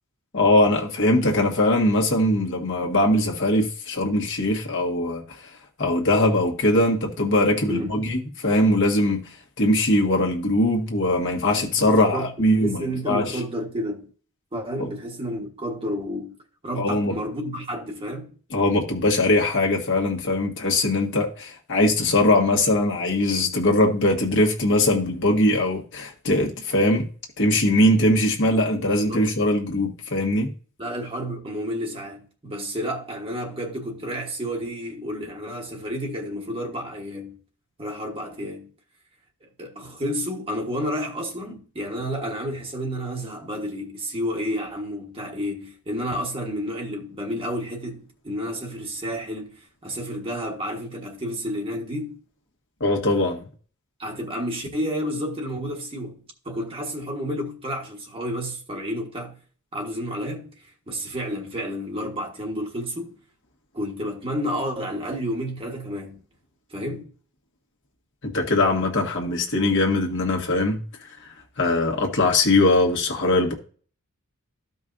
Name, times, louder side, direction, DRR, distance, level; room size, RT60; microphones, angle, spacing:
voice 1, 0.3-5.2 5.8-9.3 9.6-13.4 14.8-14.9 16.7-17.1 18.5-27.1 27.4-30.5 52.8-53.5 68.2-73.5, left 1 dB, 55° left, 1.6 m, -21 dB
voice 2, 11.8-12.3 12.6-14.1 14.5-16.4 16.6-18.3 28.5-28.6 28.8-29.3 30.8-37.4 37.8-38.7 39.4-52.2 54.0-56.1 56.4-59.4 59.7-63.1 63.7-66.2 66.7-67.1, equal, 25° right, 1.3 m, -31 dB
14.0 x 5.3 x 2.6 m
head